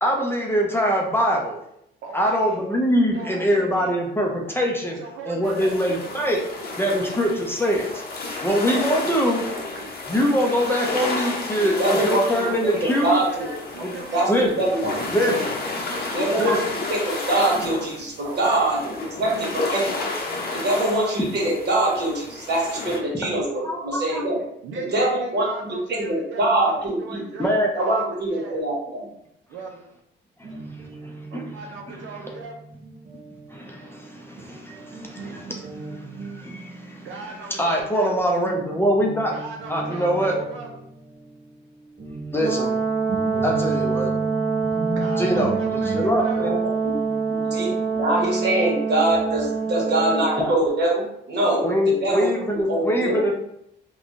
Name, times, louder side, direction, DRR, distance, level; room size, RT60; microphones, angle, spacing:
voice 1, 0.0-1.6 2.1-5.0 5.3-6.4 6.8-8.0 8.4-9.4 10.1-13.2 13.8-13.9 14.3-14.5 15.1-15.5 16.4-16.6 21.2-21.3 23.1-23.3 23.6-24.2 27.4-27.7 30.4-30.5 31.0-31.4 33.5-37.1 37.6-39.3 39.7-40.3 42.3-42.7 43.4-44.1 45.2-45.6 45.8-46.6 50.4-50.5 51.6-53.3, equal, 10° left, -1 dB, 0.5 m, -23 dB
voice 2, 2.0-2.7 3.1-4.0 4.9-6.8 8.4-10.0 12.8-15.4 15.9-16.4 18.2-18.6 24.6-28.6 29.5-29.9 31.3-32.7 37.0-38.2 39.3-40.8 44.9-45.2 45.5-46.6, right 3 dB, 75° right, 0 dB, 0.5 m, -39 dB
sound 1, 5.4-23.0, left 3 dB, 50° left, 0.7 m, -31 dB
voice 3, 11.8-13.5 14.1-14.3 14.6-14.9 15.2-15.4 16.1-16.6 16.9-20.1 20.5-24.4 24.7-27.2 27.7-29.1 46.4-46.5 46.8-47.0 47.3-53.2, right 1 dB, 55° right, -3 dB, 1.2 m, -24 dB
Guitar, 30.4-38.1 38.4-48.9, right 2 dB, 35° right, 0.6 m, -37 dB
Brass instrument, 42.4-50.4, right 5 dB, 20° right, 1.1 m, -25 dB
3.4 x 2.3 x 2.5 m, 0.77 s
cardioid pair, 90°, 20 cm